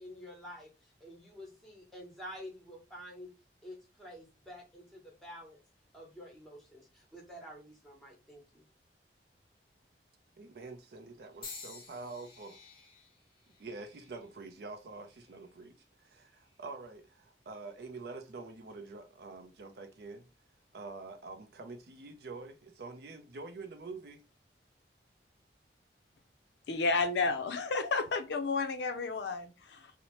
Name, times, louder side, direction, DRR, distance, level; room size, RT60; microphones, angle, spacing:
voice 1, 0.0-3.3 3.6-5.6 5.9-8.6, equal, ahead, 0.8 m, -49 dB
voice 2, 10.4-12.6 13.6-20.3 20.7-24.2, right 3 dB, 60° right, 0.4 m, -46 dB
sound 1, 11.4-15.6 16.3-16.7 17.7-17.8, left 4 dB, 30° left, 0.7 m, -52 dB
voice 3, 26.7-29.9, left 4 dB, 75° left, 0.4 m, -31 dB
2.8 x 2.0 x 2.9 m
head